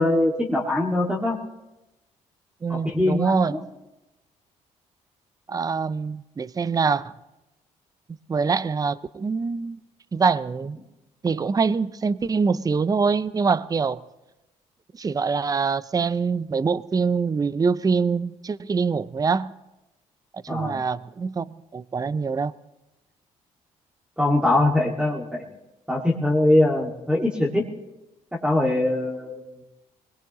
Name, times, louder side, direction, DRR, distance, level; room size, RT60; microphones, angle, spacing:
voice 1, 0.0-1.4 2.7-3.6 20.5-20.8 24.2-25.4 25.9-27.6 28.4-29.4, left 1 dB, 5° right, 2.2 m, -22 dB
voice 2, 2.6-3.5 5.5-7.1 8.3-9.8 10.1-10.8 11.2-14.0 15.0-19.5 20.4-22.5, right 5 dB, 25° right, 0.5 m, -24 dB
22.0 x 20.5 x 3.1 m
supercardioid pair, 70°, 14 cm